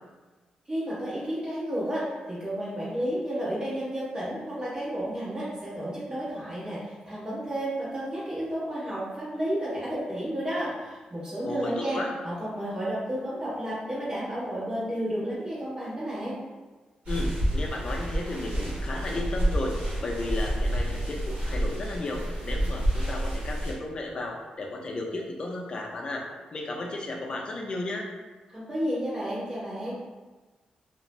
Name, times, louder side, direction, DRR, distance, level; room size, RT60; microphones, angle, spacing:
voice 1, 0.7-12.0 12.2-16.4 28.5-30.0, equal, 30° right, -9 dB, 1.1 m, -32 dB
voice 2, 11.4-12.1 17.1-26.3 26.5-28.1, left 2 dB, 40° left, 0 dB, 0.4 m, -34 dB
sound 1, 17.1-23.7, right 1 dB, 65° right, 1.0 m, -29 dB
2.4 x 2.0 x 3.0 m, 1.3 s
wide cardioid pair, 125°, 2 cm